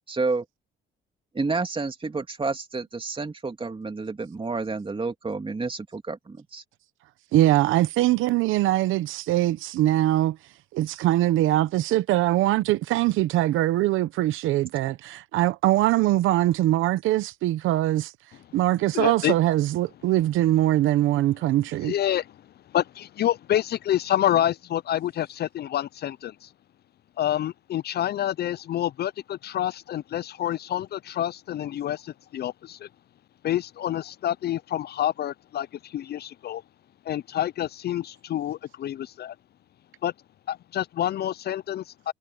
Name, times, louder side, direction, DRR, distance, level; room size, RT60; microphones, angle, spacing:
voice 1, 0.1-0.4 1.3-6.6, right 3 dB, 25° right, 3.0 m, -30 dB
voice 2, 7.3-10.4 10.7-18.1 18.5-21.9, right 15 dB, 90° right, 0.9 m, -22 dB
voice 3, 18.9-19.3 21.8-22.4 22.7-26.5 27.2-32.9 33.4-36.6 37.1-39.4 40.0-40.1 40.5-42.1, left 11 dB, 55° left, 0.4 m, -28 dB
cardioid pair, 90°, 20 cm